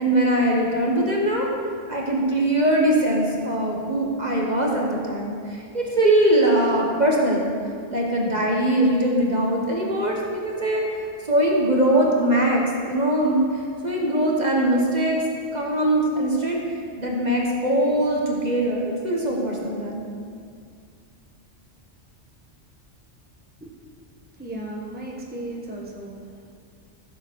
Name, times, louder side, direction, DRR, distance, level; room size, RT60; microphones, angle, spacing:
voice 1, 0.0-1.5 1.9-7.5 7.9-10.8 11.3-15.2 15.5-16.6 17.0-20.0, right 1 dB, 35° right, -2 dB, 1.4 m, -21 dB
voice 2, 24.3-26.6, right 1 dB, 10° right, -2 dB, 1.1 m, -36 dB
15.5 x 7.1 x 4.7 m, 2.3 s
omnidirectional pair, 1.2 m